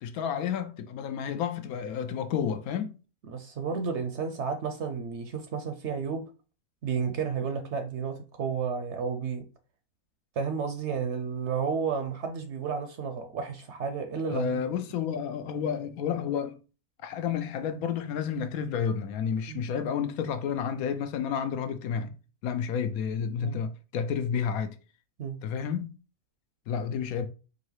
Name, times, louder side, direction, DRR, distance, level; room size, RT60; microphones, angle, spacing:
voice 1, 0.0-2.9 14.3-16.6 17.0-22.2 22.4-24.8 25.4-25.9 26.7-27.3, left 7 dB, 80° left, 1.0 m, -30 dB
voice 2, 3.3-6.3 6.8-9.5 10.4-14.7 19.5-19.6 23.4-23.6 25.2-25.4, right 6 dB, 65° right, 0.7 m, -32 dB
4.7 x 2.7 x 3.1 m
omnidirectional pair, 1.5 m